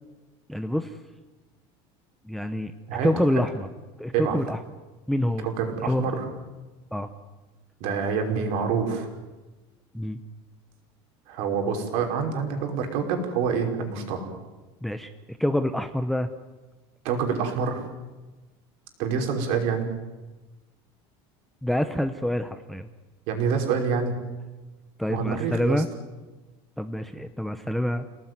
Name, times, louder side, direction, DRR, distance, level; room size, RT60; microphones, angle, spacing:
voice 1, 0.5-1.0 2.2-2.7 3.0-3.7 4.0-4.6 5.1-5.5 5.8-6.0 6.9-7.1 9.9-10.2 14.8-16.3 21.6-22.9 25.0-25.9 26.8-28.1, left 1 dB, ahead, 8 dB, 0.8 m, -26 dB
voice 2, 2.9-3.4 4.1-4.4 5.4-6.3 7.8-9.1 11.3-14.3 17.0-17.8 19.0-19.9 23.3-24.2 25.1-25.8, right 6 dB, 55° right, 3 dB, 5.3 m, -26 dB
29.5 x 18.0 x 9.5 m, 1.2 s
cardioid pair, 175°, 12 cm